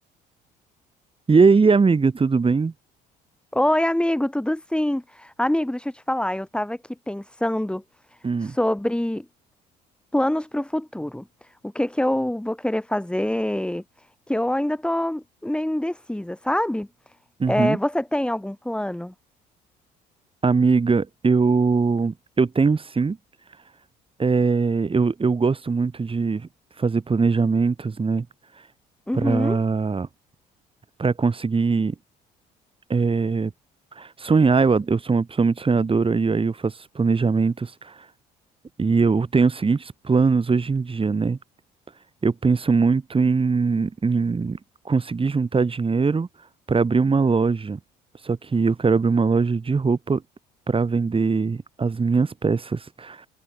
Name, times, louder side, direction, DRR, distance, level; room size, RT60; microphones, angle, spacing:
voice 1, 1.3-2.7 8.2-8.6 17.4-17.8 20.4-23.2 24.2-26.5 26.8-28.3 29.1-30.1 31.0-32.0 32.9-33.5 34.0-37.9 38.8-41.4 42.2-44.6 44.9-46.3 46.7-47.8 48.2-50.2 50.7-53.3, right 4 dB, 25° right, 2.1 m, -21 dB
voice 2, 3.5-7.8 8.4-9.3 10.1-13.8 14.3-16.9 17.5-19.1 29.1-29.6, left 1 dB, 5° left, 1.8 m, -25 dB
hypercardioid pair, 55°, 21 cm